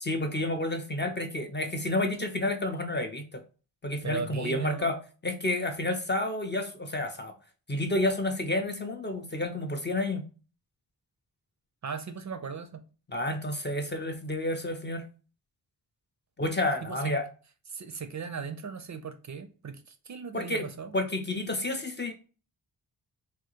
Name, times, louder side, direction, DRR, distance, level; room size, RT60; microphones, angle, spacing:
voice 1, 0.0-3.4 3.8-5.0 5.2-7.3 7.7-10.2 13.1-15.0 16.4-17.2 20.3-20.7 20.9-22.1, left 1 dB, 25° left, 5 dB, 0.4 m, -30 dB
voice 2, 4.0-4.9 11.8-12.8 16.8-17.1 17.7-20.9, right 6 dB, 45° right, 9 dB, 0.4 m, -37 dB
3.6 x 2.3 x 2.8 m, 0.36 s
wide cardioid pair, 110°, 42 cm